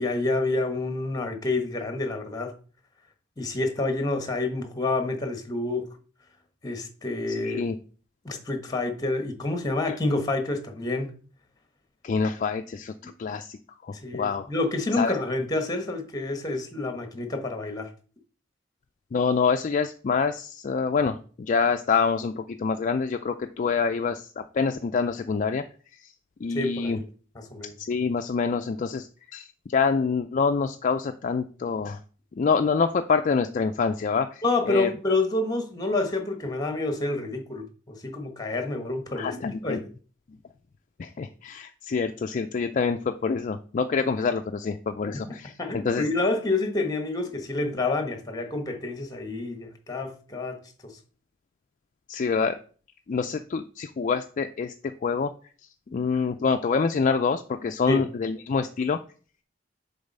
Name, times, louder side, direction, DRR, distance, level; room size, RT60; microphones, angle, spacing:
voice 1, 0.0-2.5 3.4-5.9 6.6-7.7 8.2-11.1 13.0-13.1 13.9-17.9 26.5-27.0 27.5-27.7 34.4-39.8 45.6-51.0 57.9-58.0, left 2 dB, 20° left, 1.2 m, -28 dB
voice 2, 7.3-7.8 9.9-10.0 12.0-14.5 15.0-15.2 19.1-25.6 25.9-26.1 26.4-27.0 27.8-32.0 32.3-34.9 39.2-39.8 41.0-46.1 52.1-52.6 53.1-55.3 55.9-59.0, left 5 dB, 40° left, 0.3 m, -26 dB
6.9 x 4.0 x 5.3 m
head